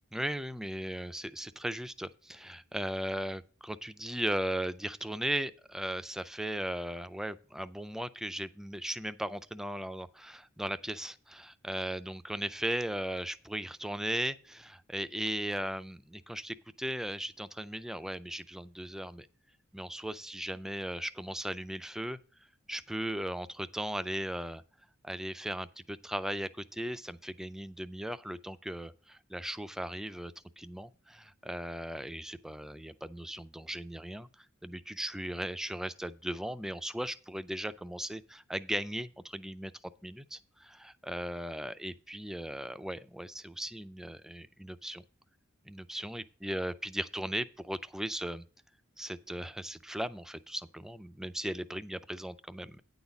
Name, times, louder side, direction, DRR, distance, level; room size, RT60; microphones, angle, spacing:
voice 1, 0.1-19.3 19.7-22.2 22.7-24.6 25.0-39.7 40.0-45.0 45.7-48.4 49.0-52.8, right 1 dB, ahead, 0.3 m, -37 dB
9.4 x 4.0 x 6.9 m
head